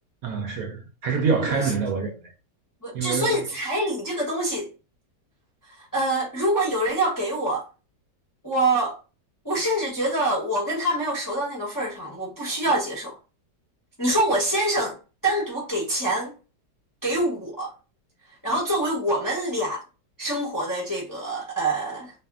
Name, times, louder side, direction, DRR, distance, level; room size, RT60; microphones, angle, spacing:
voice 1, 0.2-2.3 2.9-3.4, right 5 dB, 65° right, 1.0 m, -26 dB
voice 2, 2.8-4.7 5.7-7.7 8.4-9.0 9.4-13.2 14.0-16.3 17.0-17.7 18.4-19.8 20.2-22.1, right 1 dB, 20° left, 0.6 m, -25 dB
2.6 x 2.6 x 2.3 m
omnidirectional pair, 1.8 m